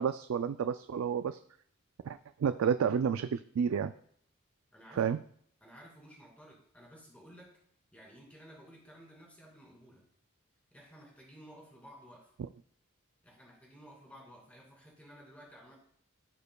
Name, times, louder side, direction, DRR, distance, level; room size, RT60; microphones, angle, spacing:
voice 1, 0.0-1.4 2.0-3.9 5.0-5.2, right 7 dB, 85° right, 11 dB, 0.3 m, -30 dB
voice 2, 4.7-5.1 5.6-7.6 7.9-10.0 10.7-12.3 13.2-15.7, equal, 5° left, -3 dB, 2.5 m, -54 dB
15.5 x 5.1 x 2.3 m, 0.64 s
head